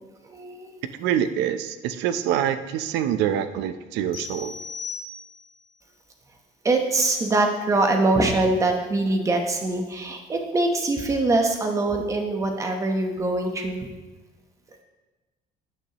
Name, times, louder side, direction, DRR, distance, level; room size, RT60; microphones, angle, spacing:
voice 1, 0.3-0.7 6.6-13.9, right 2 dB, 20° right, 4 dB, 1.0 m, -23 dB
voice 2, 0.9-4.6, right 9 dB, 85° right, 11 dB, 0.7 m, -25 dB
sound 1, 4.1-5.6, left 5 dB, 55° left, 2.1 m, -37 dB
12.0 x 9.3 x 3.0 m, 1.2 s
cardioid pair, 175°, 17 cm